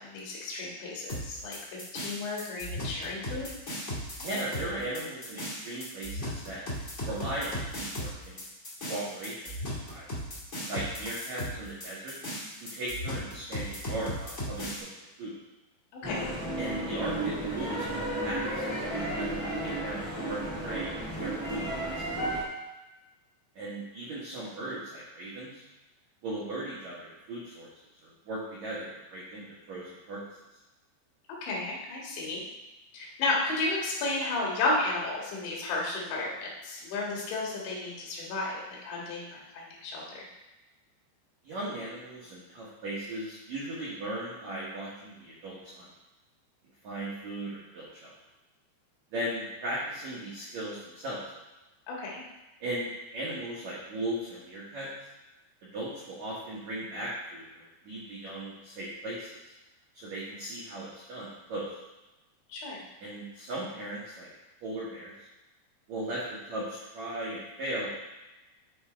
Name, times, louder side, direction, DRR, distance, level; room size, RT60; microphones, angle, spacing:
voice 1, 0.0-1.6 1.9-3.5 16.0-16.3 31.4-32.4 32.9-40.3 51.9-52.2 62.5-62.8, left 2 dB, 75° left, -3 dB, 3.9 m, -33 dB
sound 1, 1.1-14.8, equal, 50° left, 0.8 m, -37 dB
voice 2, 4.2-6.6 7.0-8.4 8.9-10.1 10.7-12.1 12.6-14.9 15.2-15.3 16.6-21.7 22.1-22.2 23.5-25.7 26.2-27.7 28.0-30.2 41.4-45.9 46.8-48.1 49.1-51.2 52.6-54.9 55.7-59.5 59.9-61.8 63.0-64.3 64.6-65.3 65.9-67.9, right 1 dB, 80° right, -7 dB, 1.6 m, -37 dB
sound 2, 16.0-22.4, right 1 dB, 10° right, 0.9 m, -33 dB
9.7 x 3.4 x 5.0 m, 1.1 s
omnidirectional pair, 5.3 m